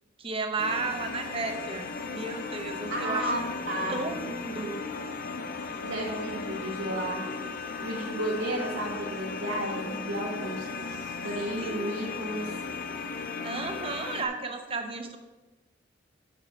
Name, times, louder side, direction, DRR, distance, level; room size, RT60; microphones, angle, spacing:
voice 1, 0.2-3.3 3.9-4.9 11.6-11.9 13.4-15.2, right 3 dB, 30° right, 5 dB, 0.7 m, -34 dB
sound 1, 0.6-14.3, left 4 dB, 45° left, 0.5 m, -36 dB
voice 2, 2.9-4.0 5.8-7.3 7.8-12.6, right 1 dB, 85° right, -7 dB, 1.3 m, -33 dB
6.1 x 5.0 x 5.7 m, 1.1 s
head